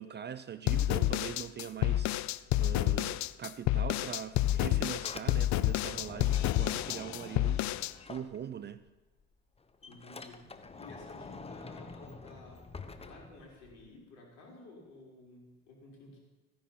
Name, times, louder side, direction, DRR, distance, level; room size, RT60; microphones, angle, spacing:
voice 1, 0.0-8.8, right 8 dB, 25° right, 0.6 m, -42 dB
sound 1, 0.7-7.9, left 14 dB, 40° left, 0.6 m, -29 dB
Sliding door, 4.7-8.9 9.2-13.9, left 4 dB, 15° left, 1.0 m, -48 dB
voice 2, 9.8-12.7 12.9-16.2, left 2 dB, 65° left, 5.7 m, -53 dB
15.5 x 10.5 x 6.0 m
hypercardioid pair, 75°, 43 cm